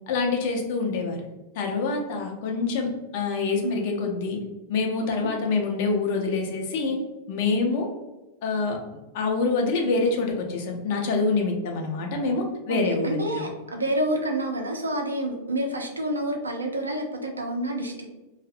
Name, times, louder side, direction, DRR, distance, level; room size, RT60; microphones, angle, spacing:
voice 1, 0.1-1.2 1.6-4.4 4.7-7.0 7.3-7.9 8.4-8.8 9.1-13.5, left 3 dB, 50° left, 2 dB, 0.4 m, -26 dB
voice 2, 12.7-18.1, right 1 dB, 75° right, 2 dB, 0.4 m, -28 dB
2.6 x 2.0 x 2.4 m, 1.1 s
figure-of-eight pair, 90°, 0 cm